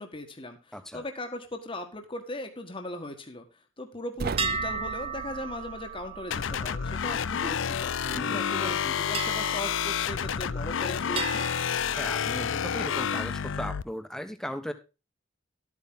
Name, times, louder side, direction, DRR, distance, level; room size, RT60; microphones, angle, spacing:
voice 1, 0.0-3.4 3.8-7.9 8.3-11.4, left 1 dB, 25° left, 5 dB, 1.5 m, -38 dB
voice 2, 0.7-1.0 8.0-8.7 12.0-14.7, equal, 5° left, 8 dB, 1.3 m, -37 dB
sound 1, 4.2-7.3, right 4 dB, 50° right, 0.4 m, -39 dB
sound 2, 4.4-8.1 9.1-10.7 11.2-12.8, right 5 dB, 30° right, 0.8 m, -37 dB
sound 3, 6.3-13.8, left 7 dB, 70° left, 0.5 m, -29 dB
12.5 x 8.8 x 3.7 m, 0.30 s
head